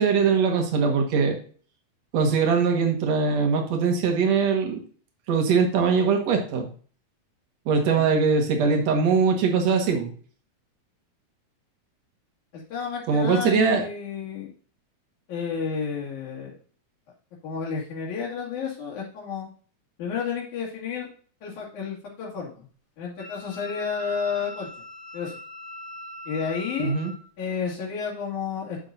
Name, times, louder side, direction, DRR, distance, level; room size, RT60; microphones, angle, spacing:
voice 1, 0.0-1.4 2.1-4.8 5.3-6.7 7.7-10.1 13.1-13.8 26.8-27.1, right 5 dB, 65° right, 2 dB, 2.7 m, -21 dB
voice 2, 12.5-14.5 15.3-16.6 17.4-19.5 20.0-21.1 21.4-22.7 23.0-24.7 25.1-25.3 26.3-27.0 27.4-28.9, left 6 dB, 85° left, -5 dB, 3.7 m, -31 dB
Wind instrument woodwind instrument, 23.2-27.2, left 1 dB, 30° left, 3.3 m, -41 dB
10.0 x 7.0 x 2.6 m, 0.43 s
omnidirectional pair, 3.3 m